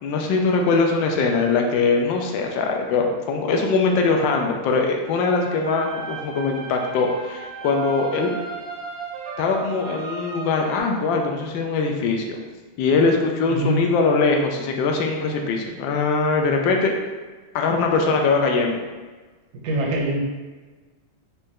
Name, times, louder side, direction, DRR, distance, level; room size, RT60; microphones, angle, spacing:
voice 1, 0.0-8.3 9.4-12.4 12.8-16.9 17.5-18.8, left 4 dB, 75° left, 2 dB, 1.3 m, -21 dB
sound 1, 5.1-10.8, right 5 dB, 85° right, 1.4 m, -34 dB
voice 2, 13.5-13.8 19.6-20.2, right 1 dB, 65° right, -1 dB, 1.0 m, -23 dB
4.3 x 2.6 x 3.6 m, 1.3 s
omnidirectional pair, 2.2 m